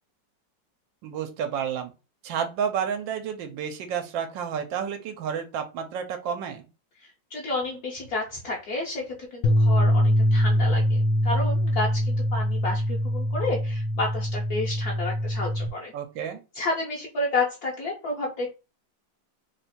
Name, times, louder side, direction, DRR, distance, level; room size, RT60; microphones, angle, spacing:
voice 1, 1.0-1.9 2.2-6.7 15.9-16.4, right 7 dB, 85° right, 6 dB, 1.3 m, -30 dB
voice 2, 7.0-15.9 16.5-18.5, left 2 dB, 60° left, -1 dB, 1.1 m, -31 dB
sound 1, 9.4-15.7, equal, 85° left, 1.3 m, -23 dB
3.3 x 2.3 x 4.2 m, 0.29 s
omnidirectional pair, 2.0 m